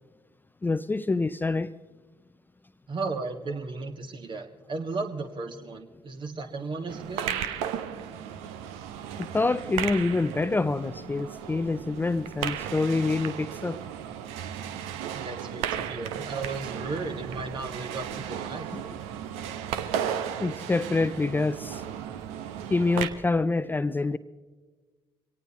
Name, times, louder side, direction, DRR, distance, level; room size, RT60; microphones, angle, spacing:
voice 1, 0.6-1.7 9.2-13.8 18.7-18.8 20.4-21.8 22.7-24.2, left 3 dB, 15° left, 0.4 m, -26 dB
voice 2, 2.9-7.4 15.1-18.7, right 3 dB, 40° right, 1.6 m, -35 dB
sound 1, 6.9-23.1, right 9 dB, 65° right, 0.8 m, -35 dB
24.0 x 18.0 x 3.0 m
figure-of-eight pair, 40°, 12 cm